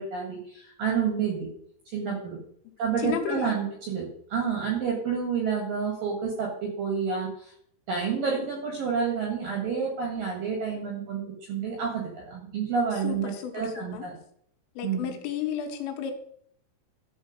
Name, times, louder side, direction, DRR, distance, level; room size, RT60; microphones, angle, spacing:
voice 1, 0.0-1.5 1.9-2.4 2.8-7.5 7.9-11.2 11.5-14.1 14.8-15.1, right 6 dB, 60° right, 0 dB, 2.7 m, -29 dB
voice 2, 3.0-3.6 13.0-14.1 14.8-16.1, left 9 dB, 85° left, 4 dB, 3.7 m, -32 dB
12.0 x 4.5 x 6.4 m, 0.67 s
omnidirectional pair, 5.6 m